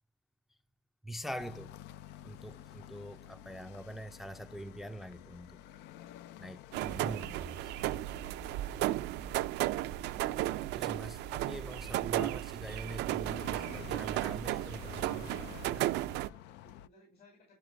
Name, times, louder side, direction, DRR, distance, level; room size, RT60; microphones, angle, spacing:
voice 1, 1.0-1.7 2.2-5.5 6.4-7.7 10.7-15.3 15.6-16.1, right 1 dB, ahead, 0.4 m, -44 dB
sound 1, 1.4-16.9, left 11 dB, 90° left, 0.5 m, -51 dB
sound 2, 6.7-16.3, right 16 dB, 85° right, 0.5 m, -34 dB
voice 2, 15.5-17.6, left 1 dB, 65° left, 5.2 m, -62 dB
11.5 x 4.1 x 3.4 m
cardioid pair, 110°, 17 cm